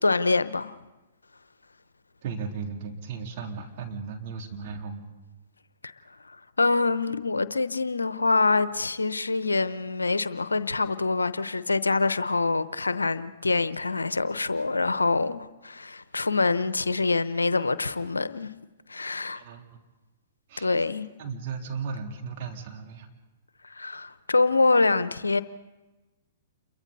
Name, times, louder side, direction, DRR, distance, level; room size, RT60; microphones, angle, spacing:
voice 1, 0.0-0.7 5.8-5.9 6.6-18.5 18.9-19.4 20.6-21.1 23.6-25.4, left 3 dB, 90° left, 0.8 m, -25 dB
voice 2, 2.2-5.1 19.3-19.6 20.5-20.9 21.2-23.1, right 5 dB, 50° right, 3.3 m, -36 dB
29.0 x 23.0 x 4.1 m
hypercardioid pair, 115°, 0 cm